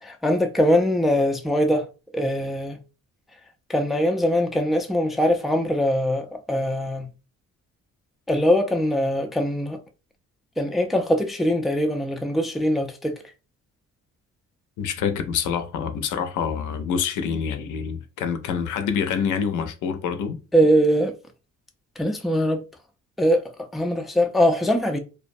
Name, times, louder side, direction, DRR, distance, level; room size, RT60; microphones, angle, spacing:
voice 1, 0.0-1.8 2.1-2.8 3.7-7.1 8.3-9.8 10.6-13.2 20.5-21.2 22.0-22.6 23.2-25.0, equal, ahead, 0.3 m, -22 dB
voice 2, 14.8-20.4, left 7 dB, 80° left, 0.5 m, -26 dB
2.4 x 2.1 x 2.5 m
cardioid pair, 90°, 30 cm